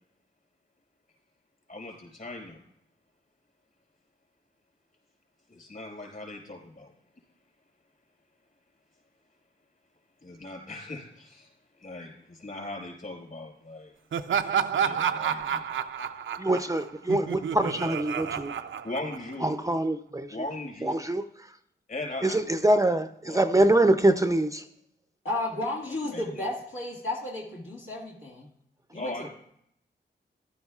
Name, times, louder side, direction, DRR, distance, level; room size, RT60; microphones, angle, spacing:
voice 1, 1.7-2.6 5.5-6.9 10.2-11.5 11.8-13.9 14.7-15.6 18.8-19.5 20.3-20.9 21.9-22.4 23.3-23.4 26.1-26.5 28.9-29.3, left 2 dB, 45° left, 1 dB, 5.0 m, -39 dB
Laughter, 14.1-19.5, right 8 dB, 75° right, 0.5 m, -30 dB
voice 2, 16.4-18.5 19.4-20.4 20.8-21.6 22.2-24.7, right 1 dB, 15° right, 9 dB, 0.5 m, -24 dB
voice 3, 25.2-28.5 28.9-29.3, left 2 dB, 85° left, -4 dB, 1.9 m, -33 dB
15.0 x 11.5 x 2.4 m, 0.73 s
cardioid pair, 50°, 20 cm